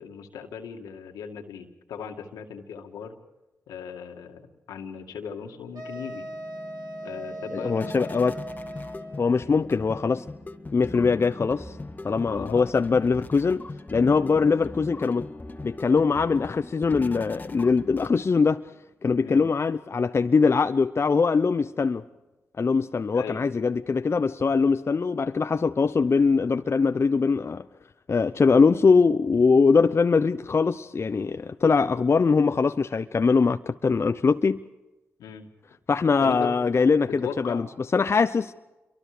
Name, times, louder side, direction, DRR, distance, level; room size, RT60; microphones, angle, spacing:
voice 1, 0.0-3.1 3.7-6.3 7.0-8.1 12.3-12.7 19.2-19.4 23.1-23.5 35.2-35.5 36.2-36.5 37.2-37.6, left 7 dB, 85° left, 2.2 m, -37 dB
sound 1, 5.7-18.5, left 2 dB, 30° left, 1.7 m, -40 dB
sound 2, 5.7-9.4, right 1 dB, 75° right, 3.4 m, -38 dB
voice 2, 7.5-8.3 9.2-10.2 10.7-11.8 12.0-13.6 13.9-15.3 15.6-18.6 19.0-22.0 22.6-27.6 28.1-34.6 35.9-37.7 37.9-38.5, left 4 dB, 45° left, 0.8 m, -22 dB
27.5 x 23.5 x 5.1 m
supercardioid pair, 40°, 6 cm